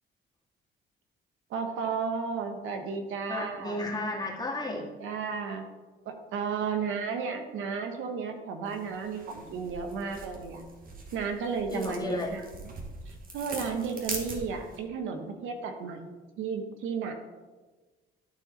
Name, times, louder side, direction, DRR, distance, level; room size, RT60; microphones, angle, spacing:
voice 1, 1.5-3.8 5.0-5.6 6.0-10.6 11.1-12.7 13.1-16.0 16.4-17.1, right 5 dB, 85° right, 6 dB, 1.1 m, -33 dB
voice 2, 3.3-4.9 11.7-12.3, left 2 dB, 20° left, -2 dB, 2.0 m, -33 dB
sound 1, 8.6-14.8, right 3 dB, 45° right, 1.6 m, -42 dB
12.0 x 4.4 x 4.1 m, 1.3 s
cardioid pair, 90°, 20 cm